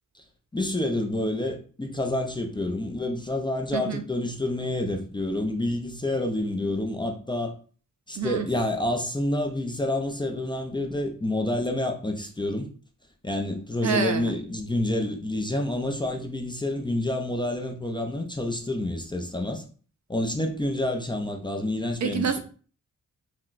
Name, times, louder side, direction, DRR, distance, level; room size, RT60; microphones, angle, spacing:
voice 1, 0.5-7.5 8.1-12.7 13.2-19.6 20.1-22.4, left 1 dB, 15° left, 0.4 m, -28 dB
voice 2, 8.1-8.5 13.8-14.4 22.0-22.4, right 7 dB, 60° right, 0.5 m, -27 dB
5.7 x 2.1 x 2.4 m
wide cardioid pair, 125°, 32 cm